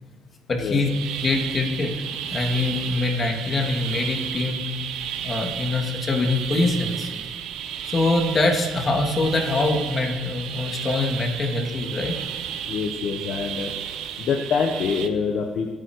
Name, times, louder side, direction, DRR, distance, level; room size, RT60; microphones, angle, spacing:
voice 1, 0.5-0.9 1.2-1.9 2.3-4.6 5.2-7.1 7.8-12.1, left 2 dB, 35° left, 1 dB, 3.0 m, -24 dB
sound 1, 0.7-15.1, right 9 dB, 85° right, 1.2 m, -33 dB
voice 2, 12.7-13.7 14.2-15.7, left 5 dB, 65° left, 2 dB, 1.4 m, -25 dB
24.5 x 9.0 x 4.9 m, 1.5 s
cardioid pair, 105°, 0 cm